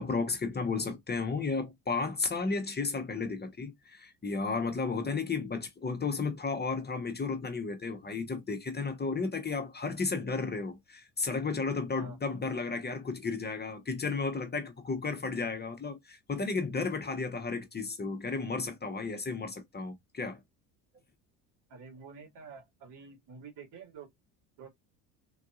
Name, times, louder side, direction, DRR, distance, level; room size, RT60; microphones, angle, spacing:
voice 1, 0.0-20.4, left 4 dB, 20° left, 1.0 m, -33 dB
voice 2, 11.9-12.4 20.9-21.0 21.7-24.1 24.6-24.7, right 5 dB, 65° right, 2.3 m, -49 dB
3.9 x 2.6 x 2.3 m
hypercardioid pair, 75°, 44 cm